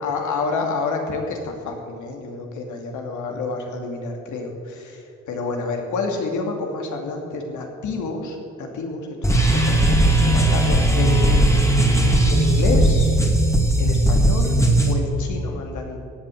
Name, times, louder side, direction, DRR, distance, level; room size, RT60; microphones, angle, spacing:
voice 1, 0.0-5.0 5.3-12.0 12.3-13.2 13.8-16.1, left 3 dB, 75° left, 2 dB, 2.7 m, -29 dB
sound 1, 9.2-14.9, right 1 dB, 10° left, 2.3 m, -17 dB
16.5 x 8.7 x 7.8 m, 2.6 s
cardioid pair, 90°, 30 cm